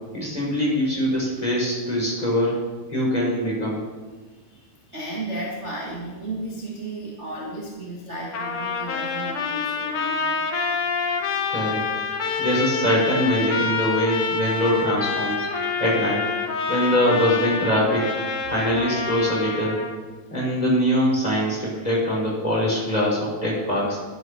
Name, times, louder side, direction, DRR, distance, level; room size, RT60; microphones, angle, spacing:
voice 1, 0.1-3.8 11.5-11.8 12.4-15.5 15.8-16.2 16.7-18.1 18.5-19.8 20.3-24.0, equal, 10° left, -5 dB, 3.8 m, -23 dB
voice 2, 4.3-10.5, right 1 dB, 40° right, -5 dB, 0.9 m, -34 dB
Trumpet, 8.3-20.0, left 5 dB, 80° left, 1.2 m, -27 dB
11.5 x 7.9 x 6.3 m, 1.3 s
omnidirectional pair, 4.2 m